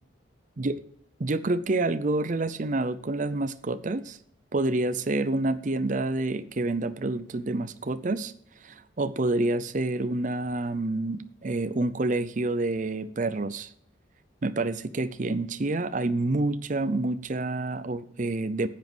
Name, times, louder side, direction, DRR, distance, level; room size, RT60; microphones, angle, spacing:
voice 1, 1.2-4.2 4.5-8.3 8.6-13.7 14.4-18.7, right 2 dB, 40° right, 12 dB, 0.6 m, -28 dB
10.5 x 7.3 x 6.0 m, 0.64 s
head